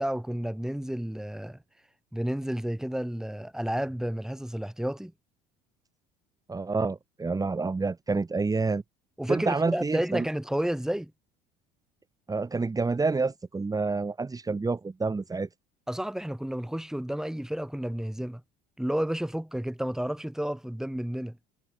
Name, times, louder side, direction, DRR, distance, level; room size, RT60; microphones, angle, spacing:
voice 1, 0.0-1.6 2.1-5.1 9.2-11.1 15.9-18.4 18.8-21.4, right 1 dB, 5° right, 5.2 m, -31 dB
voice 2, 6.5-8.8 9.3-10.3 12.3-15.5, right 4 dB, 20° right, 3.7 m, -28 dB
hypercardioid pair, 75°, 18 cm